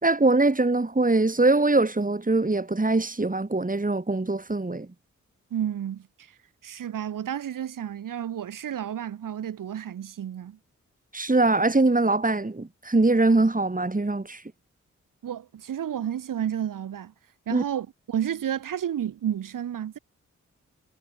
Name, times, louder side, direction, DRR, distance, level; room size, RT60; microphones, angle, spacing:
voice 1, 0.0-4.9 11.1-14.4 17.5-17.6, right 2 dB, 25° right, 4.2 m, -22 dB
voice 2, 5.5-6.1 6.6-10.6 15.2-17.1 17.5-20.0, right 9 dB, 85° right, 7.0 m, -31 dB
supercardioid pair, 40°, 32 cm